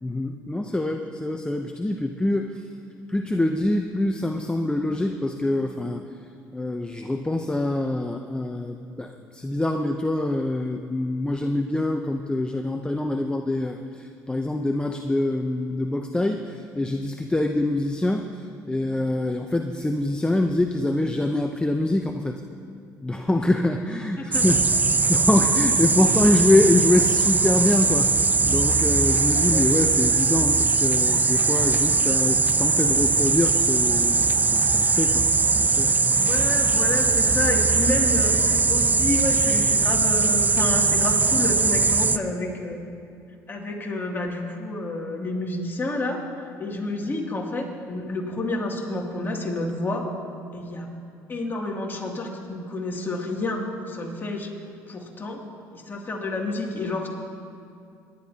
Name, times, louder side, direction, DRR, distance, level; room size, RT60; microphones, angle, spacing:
voice 1, 0.0-2.7 3.1-6.0 6.5-22.4 23.0-24.6 25.1-35.3 35.5-35.9, left 1 dB, 10° left, 5 dB, 0.8 m, -25 dB
sound 1, 24.3-42.2, right 4 dB, 20° right, 0.6 m, -20 dB
voice 2, 36.1-42.8 43.5-50.1 50.5-50.9 51.3-54.5 54.9-55.4 55.9-57.1, left 2 dB, 30° left, -1 dB, 2.7 m, -29 dB
24.5 x 11.0 x 2.9 m, 2.5 s
supercardioid pair, 75°, 8 cm